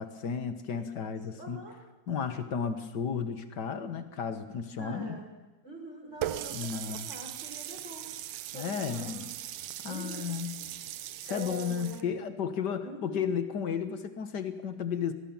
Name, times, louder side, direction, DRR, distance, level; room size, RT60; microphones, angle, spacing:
voice 1, 0.0-1.6 2.1-5.2 6.5-7.1 8.5-9.2 9.8-10.6 11.2-15.1, left 7 dB, 50° left, 9 dB, 1.3 m, -33 dB
voice 2, 0.7-1.8 4.8-5.3 5.6-8.1 8.5-9.3 9.8-10.3 11.3-12.2 12.8-13.3, right 1 dB, 20° right, 1 dB, 5.2 m, -44 dB
Water tap faucet, 6.2-12.0, right 12 dB, 70° right, 1.6 m, -39 dB
24.0 x 19.0 x 7.2 m, 1.2 s
omnidirectional pair, 3.6 m